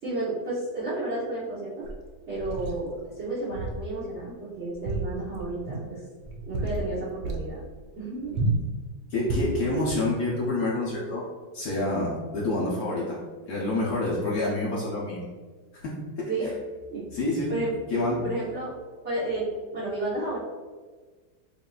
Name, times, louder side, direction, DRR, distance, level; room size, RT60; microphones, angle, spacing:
voice 1, 0.0-1.9 2.3-6.0 6.4-7.6 8.0-8.4 16.3-16.5 16.9-17.1 17.5-17.8 18.2-18.7 19.0-20.4, right 2 dB, 45° right, -9 dB, 1.0 m, -32 dB
sound 1, 1.8-2.8 3.5-3.9 4.2-4.3 4.7-5.9 6.2-6.9 7.2-7.5 8.3-8.7 9.2-9.6, right 2 dB, 75° right, 1.4 m, -30 dB
voice 2, 9.1-11.3 11.5-13.2 13.5-15.3 15.7-15.9 16.2-16.5 17.1-17.5 17.9-18.2, left 2 dB, 60° left, -5 dB, 1.2 m, -27 dB
7.2 x 2.7 x 2.3 m, 1.4 s
omnidirectional pair, 2.1 m